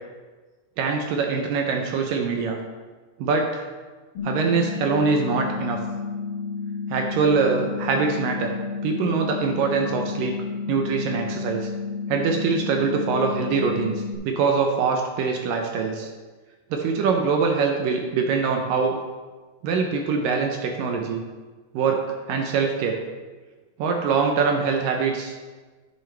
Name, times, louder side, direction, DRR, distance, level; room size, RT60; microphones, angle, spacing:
voice 1, 0.8-2.6 3.2-3.7 4.2-5.8 6.9-8.5 8.8-11.7 12.1-16.1 16.7-19.0 19.6-21.2 21.7-22.0 22.3-23.0 23.8-25.3, right 5 dB, 75° right, 3 dB, 2.2 m, -23 dB
sound 1, 4.2-14.2, left 5 dB, 70° left, 3.6 m, -31 dB
10.5 x 9.0 x 3.4 m, 1.4 s
omnidirectional pair, 4.5 m